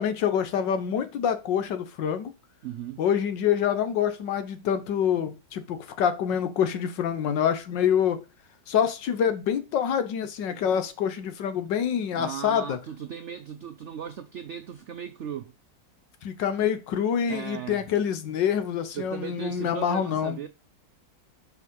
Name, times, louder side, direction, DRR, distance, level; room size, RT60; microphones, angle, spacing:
voice 1, 0.0-2.3 3.0-8.2 8.7-12.8 16.2-20.4, left 8 dB, 85° left, 1.6 m, -26 dB
voice 2, 2.6-3.0 12.1-15.5 17.3-17.8 18.9-20.5, right 9 dB, 85° right, 0.6 m, -37 dB
5.5 x 4.8 x 5.4 m
omnidirectional pair, 1.9 m